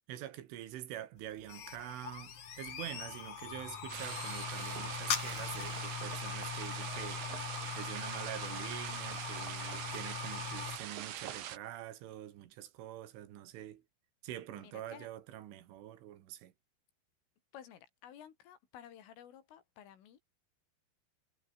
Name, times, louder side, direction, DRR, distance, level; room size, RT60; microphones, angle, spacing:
voice 1, 0.1-7.2 7.8-13.8 14.2-16.5, right 12 dB, 80° right, 4.4 m, -46 dB
sound 1, 1.2-10.8, left 7 dB, 45° left, 3.4 m, -41 dB
sound 2, 3.9-11.6, right 10 dB, 55° right, 3.0 m, -43 dB
voice 2, 14.6-15.1 17.5-20.2, left 10 dB, 85° left, 5.6 m, -54 dB
omnidirectional pair, 5.6 m